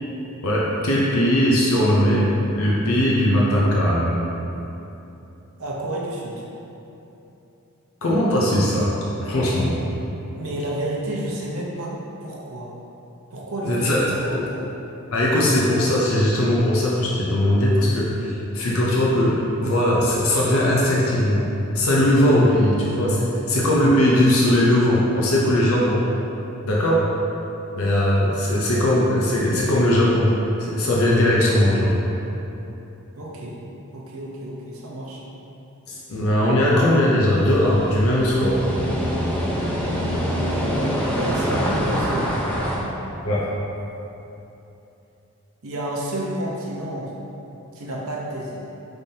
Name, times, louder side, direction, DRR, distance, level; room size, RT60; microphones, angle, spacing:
voice 1, 0.4-2.3 2.6-4.2 8.0-9.8 13.7-14.4 15.1-21.4 21.7-26.0 26.6-27.0 27.7-30.3 30.6-31.9 35.9-38.6 43.2-43.5, left 1 dB, 70° left, -5 dB, 0.6 m, -19 dB
voice 2, 5.6-6.4 10.4-11.9 12.2-12.7 13.3-14.7 26.8-27.0 33.2-33.6 33.9-35.2 41.1-42.9 45.6-47.1 47.7-48.7, right 1 dB, 70° right, -4 dB, 0.8 m, -30 dB
sound 1, 37.2-42.8, equal, 5° left, 0.5 m, -25 dB
5.4 x 3.4 x 2.7 m, 2.9 s
head